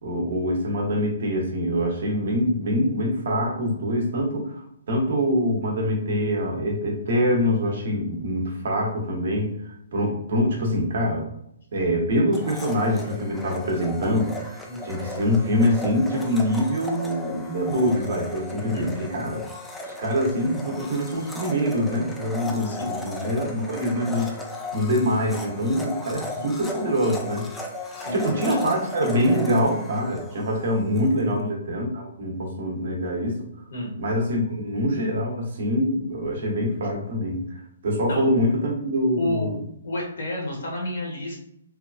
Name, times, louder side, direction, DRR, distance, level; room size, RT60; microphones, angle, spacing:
voice 1, 0.0-11.3 11.7-19.4 19.8-24.3 24.7-27.5 28.1-33.4 34.0-39.6, equal, 65° right, -1 dB, 0.9 m, -24 dB
Domestic sounds home sounds, 12.3-31.1, left 2 dB, 5° left, 0.3 m, -36 dB
voice 2, 18.6-18.9 22.6-23.0 26.3-26.4 28.0-28.6 31.2-31.4 33.7-33.9 38.1-38.2 39.2-39.5 39.8-41.4, left 1 dB, 75° left, -2 dB, 1.2 m, -30 dB
2.8 x 2.3 x 2.4 m, 0.75 s
hypercardioid pair, 150°, 0 cm